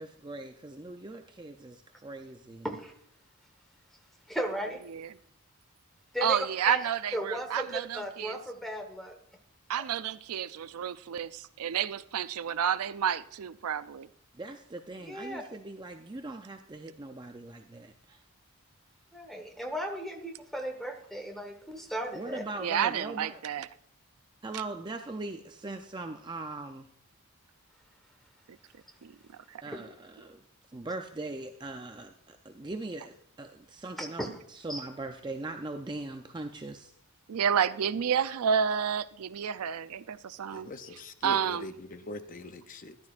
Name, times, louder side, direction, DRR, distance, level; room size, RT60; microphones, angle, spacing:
voice 1, 0.0-2.7 14.4-18.2 22.1-23.4 24.4-26.9 29.6-30.4 30.7-36.9, right 2 dB, 20° right, 5 dB, 0.4 m, -40 dB
voice 2, 4.3-4.8 6.1-6.8 7.1-9.2 9.7-9.8 15.0-15.4 19.1-22.4 29.7-29.8 34.0-34.3 34.7-34.9, equal, ahead, 4 dB, 1.2 m, -36 dB
voice 3, 6.2-8.4 9.7-14.1 22.6-23.7 29.0-29.1 29.5-29.6 37.3-40.7 41.2-41.7, right 8 dB, 80° right, 14 dB, 0.4 m, -30 dB
voice 4, 40.5-43.0, left 2 dB, 35° left, 10 dB, 0.6 m, -42 dB
14.0 x 11.5 x 2.4 m, 0.68 s
head